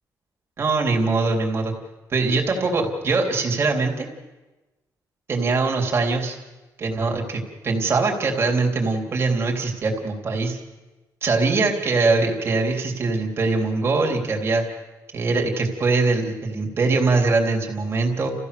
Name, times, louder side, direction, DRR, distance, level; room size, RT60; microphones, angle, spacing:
voice 1, 0.6-1.7 2.1-4.1 5.3-6.4 6.8-10.6 11.2-14.7 15.1-18.3, right 3 dB, 35° right, 1 dB, 3.4 m, -22 dB
30.0 x 15.5 x 6.9 m, 1.1 s
cardioid pair, 160°, 7 cm